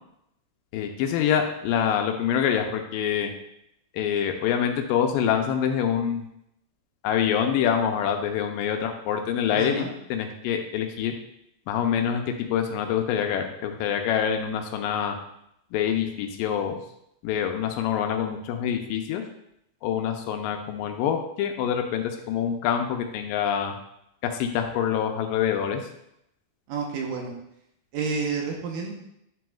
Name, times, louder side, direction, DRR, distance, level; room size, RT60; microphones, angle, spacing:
voice 1, 0.7-3.3 3.9-6.3 7.0-11.1 11.7-15.2 15.7-16.8 17.2-19.2 19.8-23.8 24.2-25.8, left 8 dB, 85° left, 4 dB, 2.3 m, -26 dB
voice 2, 9.6-9.9 26.7-27.3 27.9-28.9, right 5 dB, 85° right, 0 dB, 2.7 m, -29 dB
9.4 x 6.0 x 2.4 m, 0.78 s
omnidirectional pair, 3.9 m